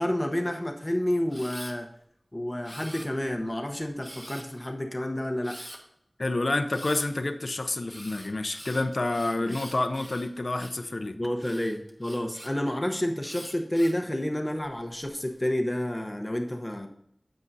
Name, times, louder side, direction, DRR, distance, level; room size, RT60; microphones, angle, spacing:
voice 1, 0.0-1.9 2.3-5.6 9.5-9.6 11.1-16.9, left 1 dB, 25° left, 3 dB, 0.9 m, -29 dB
Camera, 1.3-1.7 2.6-3.4 4.0-4.6 5.4-5.8 6.7-7.1 7.9-10.8 11.4-12.5 13.2-14.0 14.6-15.2, equal, 10° right, 1.5 m, -45 dB
voice 2, 6.2-11.1, left 2 dB, 65° left, 8 dB, 0.6 m, -28 dB
8.8 x 8.3 x 2.7 m, 0.70 s
wide cardioid pair, 40°, 0 cm